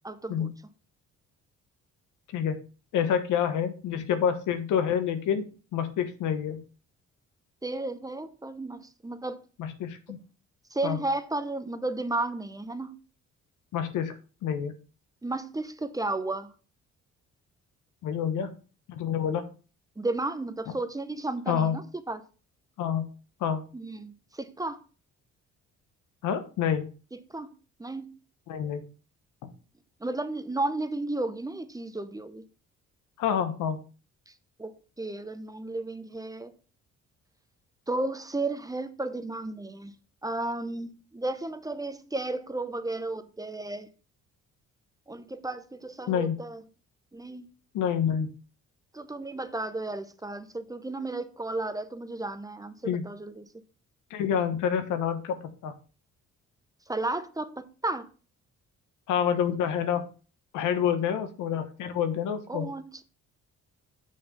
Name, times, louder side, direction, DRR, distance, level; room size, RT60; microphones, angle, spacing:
voice 1, 0.0-0.5 7.6-9.4 10.7-12.9 15.2-16.5 20.0-22.2 23.7-24.8 27.1-27.5 27.8-28.2 30.0-32.4 34.3-34.4 34.6-36.5 37.9-39.9 40.2-43.9 45.1-46.6 47.1-47.5 48.9-53.5 56.9-58.1 62.5-63.0, right 2 dB, 10° right, 0.7 m, -33 dB
voice 2, 2.9-5.4 5.7-6.6 9.6-10.2 10.8-11.0 13.7-14.1 14.4-14.7 18.0-18.5 18.9-19.5 21.5-21.8 22.8-23.1 23.4-23.6 26.2-26.9 28.5-28.9 29.4-29.5 33.2-33.8 46.1-46.4 47.7-48.3 52.8-53.0 54.1-55.7 59.1-60.1 60.5-62.7, left 8 dB, 85° left, 1.1 m, -27 dB
6.4 x 4.4 x 5.2 m
cardioid pair, 90°, 30 cm